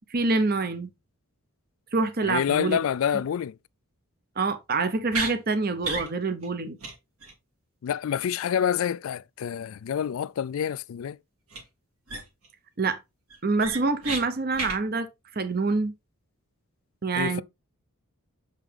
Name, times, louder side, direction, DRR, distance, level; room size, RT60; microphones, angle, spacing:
voice 1, 0.1-0.9 1.9-2.8 3.1-3.2 4.4-6.8 12.8-13.0 13.4-15.9 17.0-17.4, right 3 dB, 45° right, 0.8 m, -26 dB
voice 2, 2.3-3.5 7.8-11.2 17.2-17.4, left 8 dB, 65° left, 0.3 m, -27 dB
sound 1, 5.1-5.3 5.8-6.1 6.4-6.5 6.8-6.9 7.2-7.3 11.5-11.6 12.1-12.5 12.8-12.9 13.3-14.2 14.5-14.8, right 3 dB, 75° right, 2.9 m, -31 dB
7.1 x 5.3 x 3.3 m
head